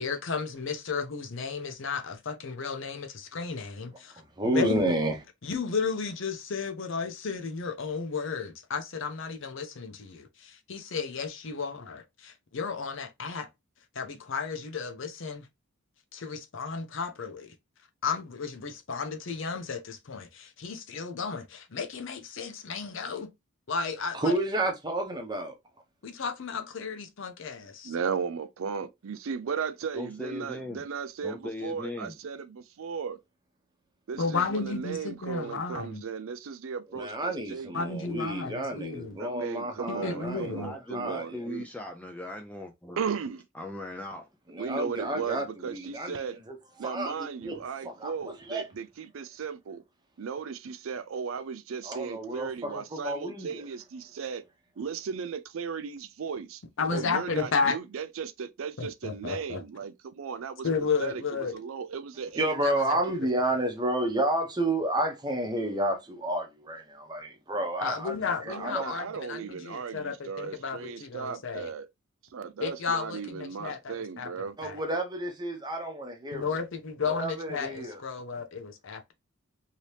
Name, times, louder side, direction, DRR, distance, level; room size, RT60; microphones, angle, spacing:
voice 1, 0.0-5.0 5.4-13.5 13.9-15.5 16.1-17.5 18.0-23.3 23.7-24.4 26.0-27.9 34.2-36.0 37.7-39.2 39.9-40.7 56.8-57.8 58.8-59.6 60.6-61.5 62.6-63.0 67.8-71.7 72.6-74.3 74.6-74.8 76.3-79.1, left 5 dB, 60° left, 0.6 m, -33 dB
voice 2, 4.4-5.1 24.1-25.5 36.9-40.5 40.9-41.4 44.5-46.1 46.5-46.6 46.8-47.2 47.4-47.6 47.8-48.1 48.5-48.6 51.9-53.5 62.4-68.1 68.6-68.9 74.6-76.5 77.2-78.0, right 1 dB, 20° right, 0.8 m, -30 dB
voice 3, 27.8-33.2 34.1-37.9 39.2-41.7 43.0-43.4 44.6-46.4 46.8-49.8 50.2-54.4 54.8-56.6 56.9-60.7 61.0-62.6 68.5-71.9 72.3-74.6, right 6 dB, 70° right, 0.4 m, -36 dB
voice 4, 29.9-30.8 31.2-32.2 40.4-43.0 43.5-44.3, left 1 dB, 5° left, 0.3 m, -39 dB
2.9 x 2.8 x 3.2 m
head